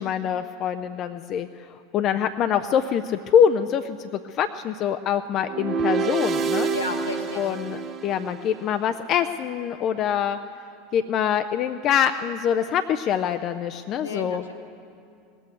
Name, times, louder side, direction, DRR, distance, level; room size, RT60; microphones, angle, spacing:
voice 1, 0.0-1.5 1.9-6.7 7.4-10.4 10.9-14.4, left 8 dB, 40° left, 8 dB, 0.4 m, -24 dB
sound 1, 5.4-8.7, right 5 dB, 35° right, 0.9 m, -27 dB
voice 2, 6.7-7.5 14.0-14.5, left 2 dB, 80° left, 4 dB, 1.2 m, -32 dB
18.5 x 8.5 x 9.1 m, 2.4 s
figure-of-eight pair, 80°, 0 cm